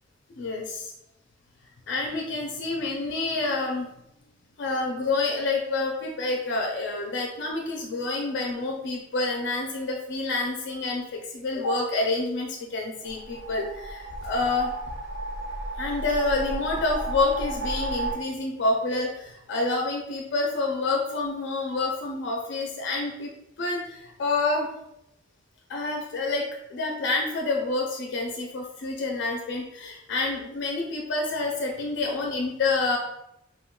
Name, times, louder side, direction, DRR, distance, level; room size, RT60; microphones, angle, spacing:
voice 1, 0.3-0.9 1.9-3.9 4.6-14.7 15.8-23.3 23.6-24.7 25.7-26.4 26.7-33.0, left 3 dB, 60° left, 1 dB, 0.4 m, -28 dB
sound 1, 13.0-18.1, right 1 dB, 55° right, 0.6 m, -33 dB
2.2 x 2.2 x 3.6 m, 0.83 s
head